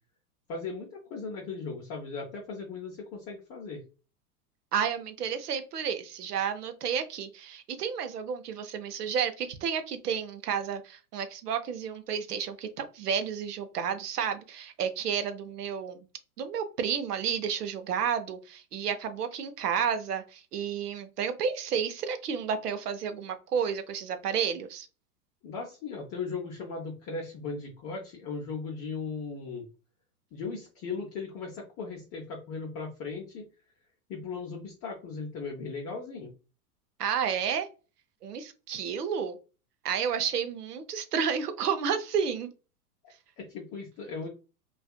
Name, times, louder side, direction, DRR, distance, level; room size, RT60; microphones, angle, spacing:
voice 1, 0.5-3.8 25.4-29.6 30.3-33.5 34.1-36.3 43.4-44.3, left 4 dB, 30° left, 0.6 m, -37 dB
voice 2, 4.7-16.1 16.4-24.9 37.0-37.7 38.2-39.4 39.8-42.5, right 7 dB, 85° right, 0.7 m, -31 dB
2.6 x 2.4 x 2.3 m
hypercardioid pair, 105°, 45 cm